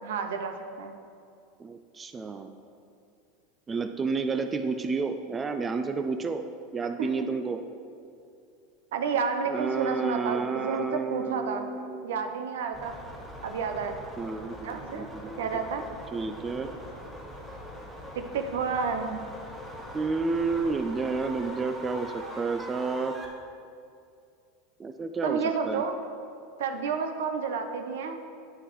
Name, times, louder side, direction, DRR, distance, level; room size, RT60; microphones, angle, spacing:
voice 1, 0.0-0.9 7.0-7.3 8.9-11.6 12.0-13.0 13.4-13.9 14.6-15.1 15.4-15.8 18.1-19.2 25.2-26.0 26.6-28.2, right 5 dB, 75° right, 6 dB, 0.6 m, -30 dB
voice 2, 1.6-2.5 3.7-6.4 6.7-7.6 9.5-12.1 14.2-15.4 16.1-16.7 19.9-23.1 24.8-25.4 25.7-25.8, right 4 dB, 25° right, 8 dB, 0.4 m, -30 dB
sound 1, 12.7-23.3, equal, ahead, 1.6 m, -42 dB
9.4 x 6.4 x 3.1 m, 2.4 s
hypercardioid pair, 90°, 0 cm